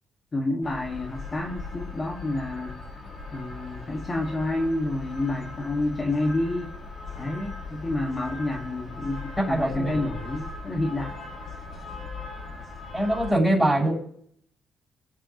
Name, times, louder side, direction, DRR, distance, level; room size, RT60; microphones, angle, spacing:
voice 1, 0.3-2.8 3.3-6.8 7.2-11.2, left 2 dB, 30° left, 1 dB, 1.8 m, -29 dB
sound 1, 0.6-13.3, left 3 dB, 50° left, 5.4 m, -39 dB
voice 2, 9.4-10.0 12.9-14.0, right 1 dB, ahead, -3 dB, 6.6 m, -23 dB
21.0 x 8.5 x 3.0 m, 0.63 s
cardioid pair, 90°, 0 cm